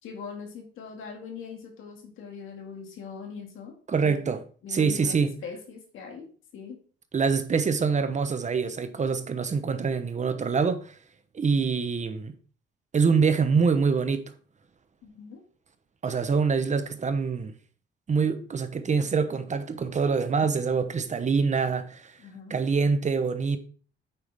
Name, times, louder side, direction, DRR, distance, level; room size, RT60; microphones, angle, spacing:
voice 1, 0.0-3.7 4.0-4.2 4.6-6.8 15.0-15.4 22.2-22.6, left 6 dB, 85° left, 2.3 m, -41 dB
voice 2, 3.9-4.4 4.7-5.3 7.1-10.9 11.3-12.3 12.9-14.3 16.0-17.5 18.1-22.1 22.5-23.6, right 5 dB, 35° right, 1.0 m, -25 dB
8.6 x 6.3 x 3.5 m
cardioid pair, 90°, 20 cm